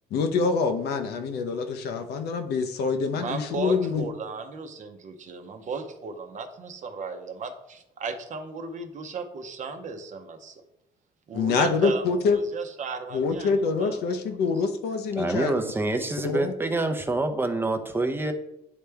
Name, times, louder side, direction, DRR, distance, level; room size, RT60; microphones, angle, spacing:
voice 1, 0.1-4.0 11.3-12.4 13.1-15.6 16.2-16.5, left 4 dB, 75° left, 7 dB, 0.8 m, -25 dB
voice 2, 3.1-10.6 11.3-14.0 14.3-14.4, right 4 dB, 45° right, 6 dB, 0.8 m, -36 dB
voice 3, 15.2-18.3, right 2 dB, 15° right, 5 dB, 0.7 m, -26 dB
9.5 x 3.3 x 3.4 m, 0.84 s
cardioid pair, 110°, 17 cm